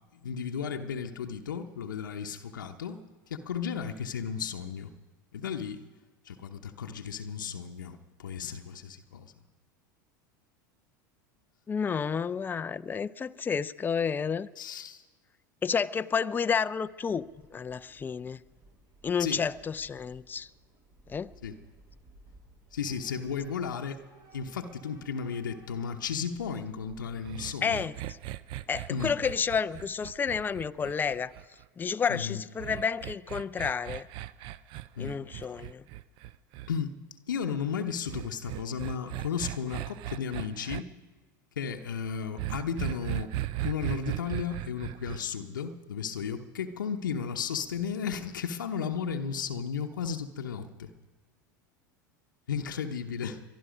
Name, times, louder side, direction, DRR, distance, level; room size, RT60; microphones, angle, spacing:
voice 1, 0.2-3.0 3.3-4.9 5.3-5.8 6.2-9.3 14.6-15.0 19.2-19.4 21.4-21.6 22.7-24.0 24.3-27.9 28.9-29.1 32.1-32.4 35.0-35.1 36.7-36.9 37.3-40.9 41.6-43.3 43.6-50.9 52.5-53.4, left 7 dB, 85° left, 0.9 m, -34 dB
voice 2, 11.7-14.5 15.6-18.4 19.0-20.5 21.1-21.3 27.6-27.9 28.7-31.3 31.8-34.1 35.0-35.8, left 6 dB, 20° left, 0.4 m, -30 dB
Train / Subway metro underground, 16.7-31.5, right 2 dB, 40° right, 3.5 m, -59 dB
sound 1, 27.2-31.6 32.6-36.7 38.1-40.8 42.4-45.2, right 14 dB, 55° right, 0.5 m, -37 dB
22.5 x 11.0 x 5.1 m
hypercardioid pair, 90°, 10 cm